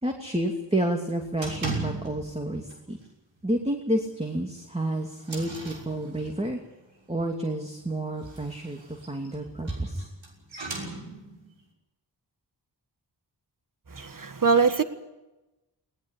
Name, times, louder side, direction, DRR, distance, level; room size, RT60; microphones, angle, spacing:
voice 1, 0.0-3.0 3.4-6.6 7.1-10.1, right 1 dB, 15° right, 2 dB, 2.6 m, -30 dB
sound 1, 1.4-2.4 2.7-3.0 3.4-3.5 3.9-4.0 4.6-6.6 8.0-11.5, right 3 dB, 85° right, 6.3 m, -38 dB
voice 2, 13.9-14.8, right 5 dB, 45° right, 9 dB, 1.6 m, -22 dB
20.5 x 19.0 x 8.3 m, 1.0 s
wide cardioid pair, 75°, 44 cm